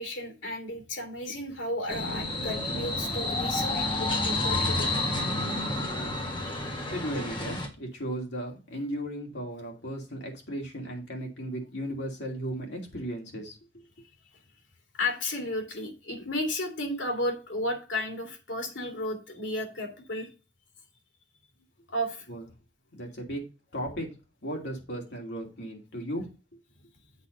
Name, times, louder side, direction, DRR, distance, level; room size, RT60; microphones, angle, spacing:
voice 1, 0.0-4.9 6.4-6.6 14.9-20.3 21.9-22.3, left 1 dB, 85° left, 4 dB, 2.7 m, -33 dB
sound 1, 1.9-7.7, left 2 dB, 25° left, 1.7 m, -30 dB
voice 2, 6.9-13.6 22.3-22.4 22.9-23.4 23.7-24.1 24.4-26.3, equal, 70° left, 0 dB, 2.7 m, -35 dB
8.2 x 3.7 x 6.6 m, 0.31 s
head